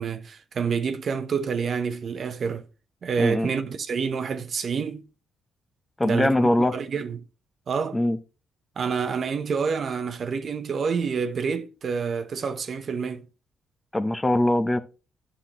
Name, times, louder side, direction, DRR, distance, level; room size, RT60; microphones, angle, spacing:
voice 1, 0.0-2.6 3.0-5.0 6.0-6.3 6.7-7.2 7.7-8.0 8.8-13.3, right 6 dB, 50° right, 0.8 m, -28 dB
voice 2, 3.2-3.5 6.0-6.7 7.9-8.2 13.9-14.8, left 1 dB, 15° left, 0.7 m, -22 dB
9.8 x 5.7 x 3.0 m
cardioid pair, 90°, 0 cm